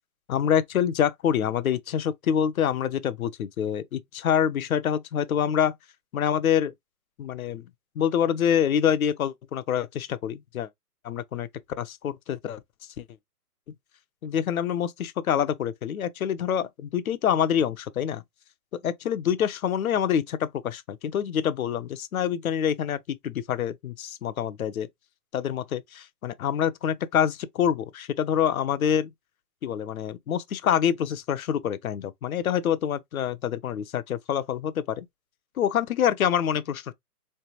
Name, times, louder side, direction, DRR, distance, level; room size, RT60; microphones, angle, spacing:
voice 1, 0.3-5.7 6.1-6.7 7.2-7.6 8.0-10.7 11.0-11.5 11.8-12.6 13.0-13.1 14.2-18.2 18.7-24.9 25.3-29.1 29.6-35.1 35.6-36.9, left 9 dB, 60° left, 0.6 m, -26 dB
3.3 x 3.3 x 2.8 m
hypercardioid pair, 155°, 48 cm